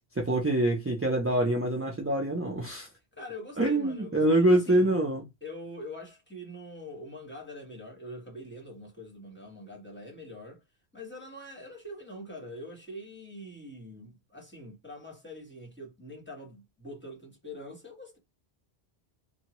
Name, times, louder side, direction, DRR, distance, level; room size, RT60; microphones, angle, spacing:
voice 1, 0.2-2.9 3.6-5.2, right 1 dB, 20° right, 0.3 m, -25 dB
voice 2, 3.1-4.9 5.4-10.6 10.9-18.2, left 1 dB, 10° left, 1.2 m, -44 dB
2.7 x 2.2 x 2.9 m
omnidirectional pair, 1.1 m